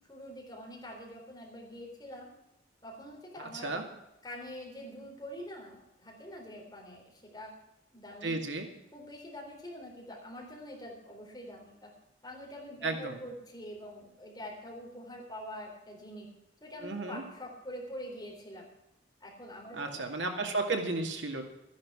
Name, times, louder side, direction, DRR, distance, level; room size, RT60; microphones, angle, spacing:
voice 1, 0.1-2.3 2.8-3.8 4.2-7.5 7.9-8.4 8.9-11.9 12.2-16.3 16.6-18.7 19.2-20.0 20.3-20.6, equal, 20° left, -1 dB, 4.0 m, -45 dB
voice 2, 8.2-8.7 12.8-13.2 16.8-17.2 19.7-21.4, right 3 dB, 80° right, 3 dB, 2.2 m, -33 dB
13.5 x 11.0 x 6.2 m, 0.89 s
head